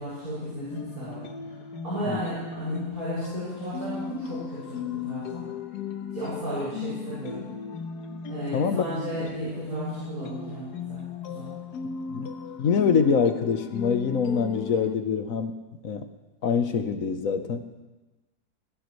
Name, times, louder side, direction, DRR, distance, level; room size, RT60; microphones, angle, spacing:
voice 1, 0.0-1.6 1.8-5.5 6.1-7.5 8.3-11.5, equal, 65° right, -11 dB, 7.3 m, -34 dB
sound 1, 0.7-15.0, left 6 dB, 80° left, 1.6 m, -36 dB
voice 2, 8.5-8.9 12.1-12.3 12.6-15.5 15.8-16.1 16.4-17.6, left 6 dB, 60° left, 8 dB, 1.3 m, -24 dB
20.0 x 17.5 x 3.2 m, 1.2 s
omnidirectional pair, 1.7 m